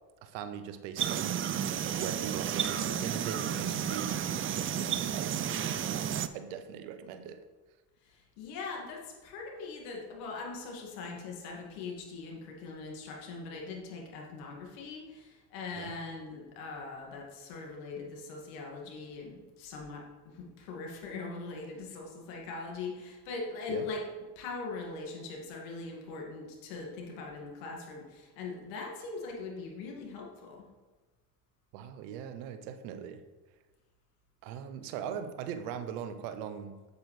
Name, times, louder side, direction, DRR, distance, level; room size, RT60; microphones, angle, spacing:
voice 1, 0.2-1.7 2.0-5.5 6.3-7.4 15.8-15.9 23.7-23.9 31.7-33.2 34.4-36.9, right 8 dB, 75° right, 10 dB, 0.9 m, -40 dB
sound 1, 1.0-6.3, right 9 dB, 25° right, 0.4 m, -32 dB
voice 2, 8.0-30.7, left 3 dB, 75° left, 0 dB, 2.2 m, -41 dB
8.2 x 8.2 x 3.3 m, 1.3 s
hypercardioid pair, 70°, 50 cm